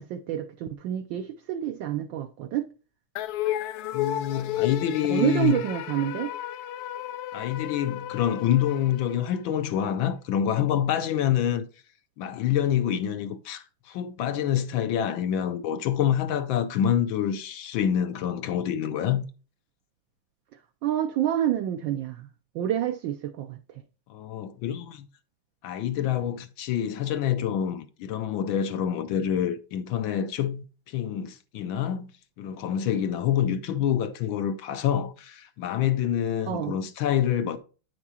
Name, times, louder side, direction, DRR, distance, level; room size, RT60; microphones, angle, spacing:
voice 1, 0.0-2.7 5.1-6.3 20.8-22.3 22.5-23.6 36.5-36.8, right 11 dB, 70° right, 1.2 m, -28 dB
sound 1, 3.2-9.7, left 13 dB, 90° left, 1.6 m, -33 dB
voice 2, 3.9-5.6 7.3-11.7 12.2-19.3 24.1-25.1 25.6-32.1 32.4-37.6, left 9 dB, 75° left, 1.3 m, -27 dB
8.9 x 6.1 x 2.8 m
omnidirectional pair, 2.4 m